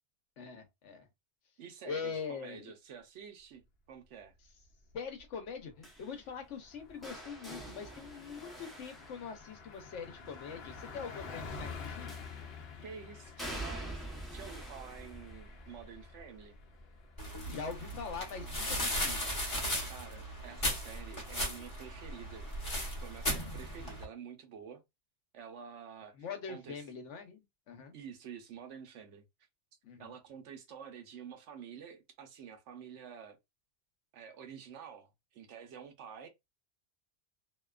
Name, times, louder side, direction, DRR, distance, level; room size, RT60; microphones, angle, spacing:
voice 1, 0.4-1.1 1.9-2.7 4.9-12.1 17.5-19.2 26.2-28.0 29.8-30.1, left 6 dB, 85° left, 1.1 m, -43 dB
voice 2, 1.6-4.3 12.8-16.6 19.9-22.5 22.9-24.8 25.3-26.1 26.5-26.8 27.9-29.2 30.0-33.4 34.1-36.3, right 7 dB, 85° right, 1.0 m, -49 dB
Car passing by, 4.7-5.3 5.7-5.8 6.1-20.4, left 5 dB, 65° left, 0.8 m, -50 dB
sound 1, 5.8-9.9 12.1-12.7 13.4-19.2 19.5-20.0 21.2-21.3, right 1 dB, ahead, 0.6 m, -47 dB
sound 2, 17.2-24.0, equal, 30° left, 0.9 m, -36 dB
2.7 x 2.2 x 2.3 m
omnidirectional pair, 1.2 m